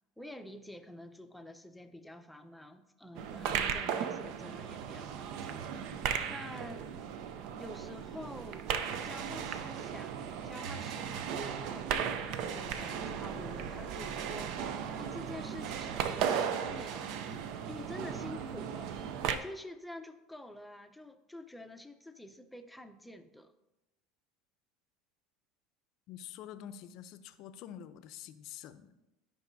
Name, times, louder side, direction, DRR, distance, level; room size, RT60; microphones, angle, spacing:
voice 1, 0.2-5.8 6.3-6.9 7.6-8.7 9.0-10.2 10.4-14.6 15.0-17.2 17.7-18.9 19.3-23.5, left 1 dB, 5° left, 8 dB, 0.6 m, -48 dB
sound 1, 3.1-19.4, right 8 dB, 65° right, 0.5 m, -36 dB
voice 2, 26.1-29.0, left 10 dB, 60° left, 12 dB, 0.5 m, -47 dB
12.0 x 5.3 x 2.6 m, 0.97 s
supercardioid pair, 105°, 0 cm